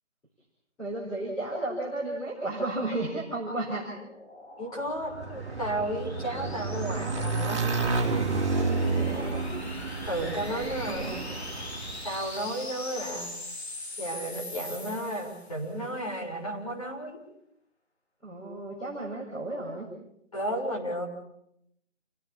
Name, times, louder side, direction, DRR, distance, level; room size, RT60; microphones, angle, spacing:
voice 1, 0.8-3.9 9.0-9.5 10.9-11.3 18.2-19.9, right 2 dB, 5° left, -11 dB, 4.2 m, -33 dB
sound 1, 3.7-15.7, left 2 dB, 60° left, 4.1 m, -42 dB
voice 2, 4.6-7.6 10.1-11.2 12.0-13.3 14.0-17.2 20.3-21.1, right 1 dB, 30° left, -2 dB, 7.1 m, -33 dB
Motorcycle / Engine, 5.0-12.3, right 3 dB, 25° right, 4.6 m, -30 dB
29.5 x 17.5 x 7.3 m, 0.76 s
figure-of-eight pair, 175°, 37 cm